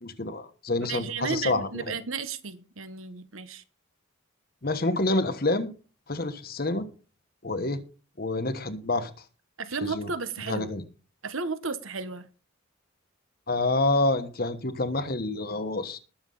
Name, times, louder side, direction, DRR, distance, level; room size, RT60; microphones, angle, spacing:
voice 1, 0.0-1.9 4.6-5.7 6.1-6.9 7.4-7.8 8.2-9.1 9.8-10.1 10.5-10.8 13.5-16.0, left 2 dB, 45° left, 1.3 m, -27 dB
voice 2, 0.8-3.6 9.6-10.7 11.2-12.3, right 4 dB, 75° right, 1.3 m, -33 dB
20.5 x 7.0 x 4.0 m
head